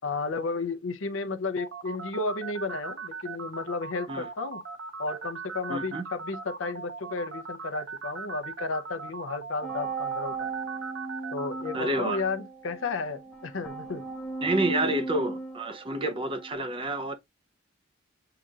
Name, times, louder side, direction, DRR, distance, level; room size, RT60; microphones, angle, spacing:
voice 1, 0.0-4.6 5.0-10.5 11.3-14.0, left 3 dB, 80° left, 0.6 m, -33 dB
sound 1, 1.6-12.2, right 5 dB, 70° right, 0.6 m, -39 dB
voice 2, 5.7-6.0 11.7-12.2 14.4-17.2, right 1 dB, 25° right, 0.6 m, -29 dB
sound 2, 9.6-16.5, right 4 dB, 5° left, 0.8 m, -36 dB
7.7 x 2.9 x 2.4 m
head